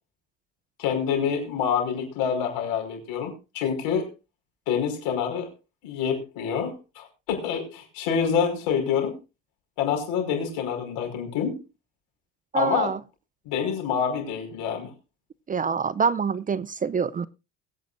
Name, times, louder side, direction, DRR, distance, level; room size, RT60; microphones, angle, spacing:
voice 1, 0.8-4.1 4.7-5.5 5.8-9.2 9.8-11.6 12.5-12.9 13.5-14.9, left 7 dB, 75° left, 4 dB, 5.3 m, -27 dB
voice 2, 12.5-13.0 15.5-17.3, right 6 dB, 25° right, 19 dB, 0.6 m, -25 dB
21.5 x 9.1 x 2.6 m, 0.28 s
supercardioid pair, 90°, 34 cm